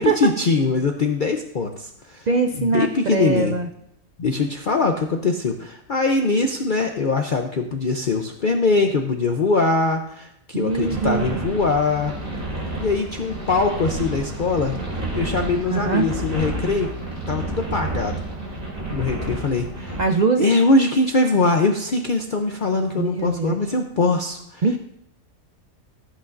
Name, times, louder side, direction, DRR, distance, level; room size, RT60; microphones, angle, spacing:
voice 1, 0.0-2.3 2.6-3.6 4.2-12.1 12.7-14.8 15.1-16.9 17.3-18.2 18.9-20.0 20.4-24.6, left 3 dB, 50° left, 4 dB, 0.7 m, -22 dB
voice 2, 2.3-3.7 10.5-11.4 15.7-16.1 20.0-20.6 23.0-23.6 24.6-24.8, right 4 dB, 65° right, 6 dB, 0.4 m, -22 dB
sound 1, 10.7-20.0, right 2 dB, 40° right, 3.2 m, -30 dB
14.5 x 8.3 x 2.5 m, 0.79 s
omnidirectional pair, 1.5 m